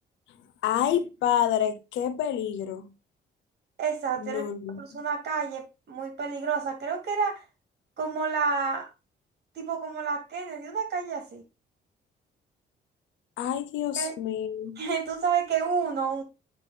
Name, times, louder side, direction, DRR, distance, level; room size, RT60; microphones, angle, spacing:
voice 1, 0.6-2.9 4.2-5.0 13.4-14.8, left 10 dB, 85° left, 0.8 m, -28 dB
voice 2, 3.8-4.5 4.8-7.4 8.0-8.9 9.6-11.4 14.0-14.1 14.8-16.2, right 5 dB, 60° right, 2.7 m, -29 dB
8.7 x 3.6 x 3.4 m
cardioid pair, 80°, 19 cm